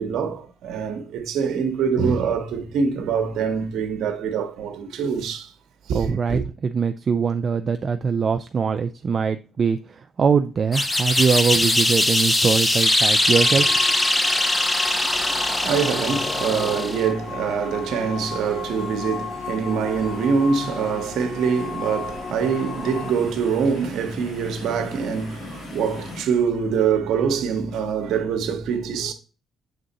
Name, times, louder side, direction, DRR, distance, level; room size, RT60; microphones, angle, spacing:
voice 1, 0.0-5.5 5.9-6.4 15.1-29.1, right 6 dB, 80° right, 0.8 m, -24 dB
voice 2, 5.9-13.7, right 6 dB, 45° right, 0.4 m, -22 dB
sound 1, 10.7-17.1, left 1 dB, 20° left, 0.9 m, -21 dB
sound 2, 13.2-26.2, left 3 dB, 75° left, 2.4 m, -42 dB
sound 3, 13.3-23.1, left 5 dB, 35° left, 0.6 m, -35 dB
6.9 x 3.6 x 3.9 m
cardioid pair, 90°, 0 cm